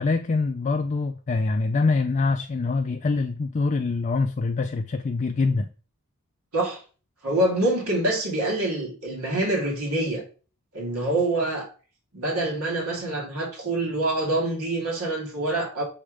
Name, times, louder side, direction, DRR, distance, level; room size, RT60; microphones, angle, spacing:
voice 1, 0.0-5.7, left 3 dB, 35° left, 0.3 m, -24 dB
voice 2, 7.2-10.2 10.7-11.7 12.1-15.8, right 1 dB, 85° right, 2.4 m, -25 dB
6.4 x 3.3 x 4.9 m
head